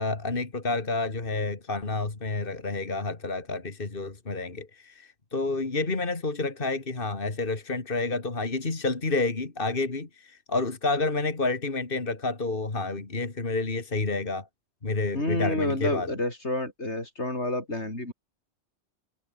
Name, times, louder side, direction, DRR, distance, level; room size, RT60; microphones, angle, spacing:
voice 1, 0.0-14.5 14.8-16.1, left 3 dB, 55° left, 2.7 m, -29 dB
voice 2, 15.1-18.1, left 1 dB, 80° left, 6.8 m, -29 dB
omnidirectional pair, 1.1 m